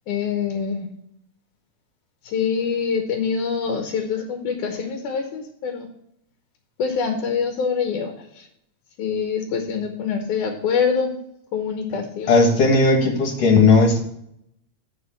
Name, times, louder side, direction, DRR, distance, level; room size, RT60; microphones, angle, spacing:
voice 1, 0.1-0.9 2.2-5.9 6.8-8.5 9.0-11.1 11.5-12.5, left 6 dB, 85° left, 4 dB, 2.6 m, -25 dB
voice 2, 12.3-14.0, left 3 dB, 60° left, 2 dB, 2.6 m, -16 dB
9.9 x 6.4 x 4.4 m, 0.74 s
omnidirectional pair, 3.4 m